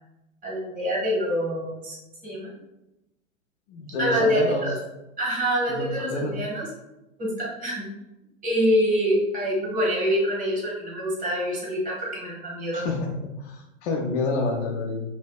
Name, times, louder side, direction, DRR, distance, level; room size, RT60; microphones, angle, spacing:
voice 1, 0.4-1.9 2.2-2.6 4.0-4.7 5.2-6.7 7.2-7.8 8.4-12.8, equal, 20° right, -3 dB, 1.0 m, -25 dB
voice 2, 3.7-4.7 5.7-6.4 12.7-13.0 13.4-15.0, left 3 dB, 55° left, -1 dB, 0.5 m, -28 dB
2.6 x 2.2 x 2.3 m, 0.95 s
hypercardioid pair, 115°, 40 cm